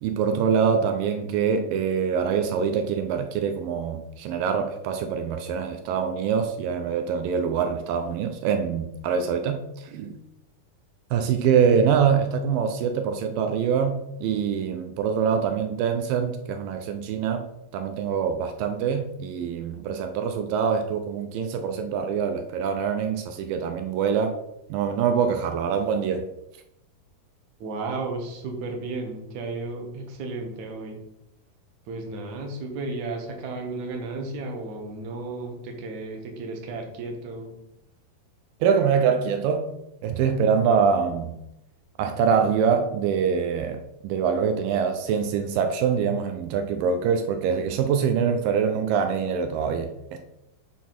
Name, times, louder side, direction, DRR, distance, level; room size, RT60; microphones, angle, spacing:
voice 1, 0.0-10.2 11.1-17.5 17.7-24.4 24.7-26.3 38.6-39.7 40.0-41.4 42.0-50.2, right 6 dB, 80° right, 6 dB, 2.1 m, -24 dB
voice 2, 27.6-31.0 31.9-37.5, right 3 dB, 60° right, 3 dB, 2.1 m, -33 dB
7.2 x 4.1 x 5.9 m, 0.83 s
omnidirectional pair, 4.5 m